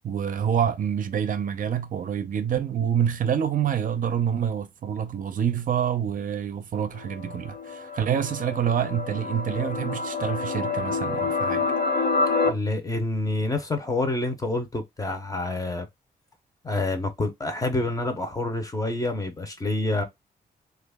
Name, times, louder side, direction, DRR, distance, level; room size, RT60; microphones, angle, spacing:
voice 1, 0.0-11.7, right 8 dB, 55° right, 0.5 m, -27 dB
sound 1, 6.9-12.5, left 4 dB, 75° left, 1.0 m, -27 dB
voice 2, 12.4-15.9 16.6-20.0, left 2 dB, 20° left, 0.7 m, -27 dB
3.0 x 2.4 x 3.4 m
wide cardioid pair, 145°, 16 cm